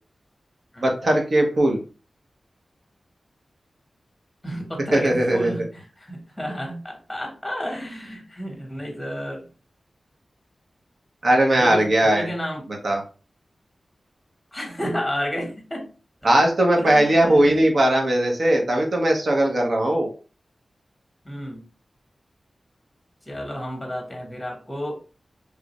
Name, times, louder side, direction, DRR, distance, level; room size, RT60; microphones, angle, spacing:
voice 1, 0.8-1.8 4.9-5.5 11.2-12.3 12.8-13.0 16.2-20.1, right 1 dB, 60° right, 2 dB, 1.0 m, -19 dB
voice 2, 4.4-9.5 11.5-12.7 14.5-15.9 16.2-16.4 16.8-17.7 21.2-21.6 23.3-25.0, equal, 10° left, 1 dB, 1.2 m, -31 dB
3.2 x 2.5 x 3.0 m, 0.36 s
wide cardioid pair, 70°, 0 cm